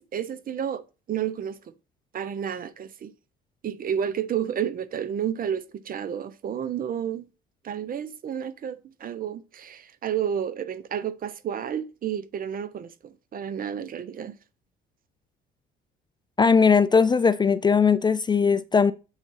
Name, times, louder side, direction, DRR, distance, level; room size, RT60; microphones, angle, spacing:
voice 1, 0.1-1.6 2.1-3.1 3.6-7.3 7.6-14.3, right 9 dB, 45° right, 0.8 m, -31 dB
voice 2, 16.4-18.9, left 5 dB, 20° left, 0.4 m, -19 dB
8.0 x 3.7 x 4.0 m
supercardioid pair, 75°, 20 cm